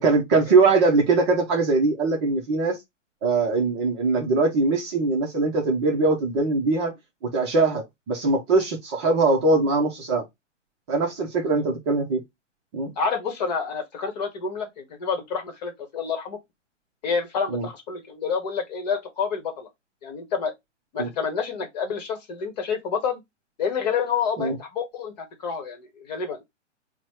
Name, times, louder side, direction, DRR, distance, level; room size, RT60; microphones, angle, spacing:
voice 1, 0.0-2.8 3.2-6.9 7.2-10.2 10.9-12.2 12.7-12.9 17.5-17.7 21.0-21.1 24.4-24.6, right 3 dB, 20° right, 0.7 m, -22 dB
voice 2, 13.0-16.4 17.0-19.7 20.0-20.5 20.9-23.2 23.6-26.4, left 6 dB, 35° left, 1.1 m, -28 dB
4.2 x 2.2 x 4.4 m
figure-of-eight pair, 120°, 37 cm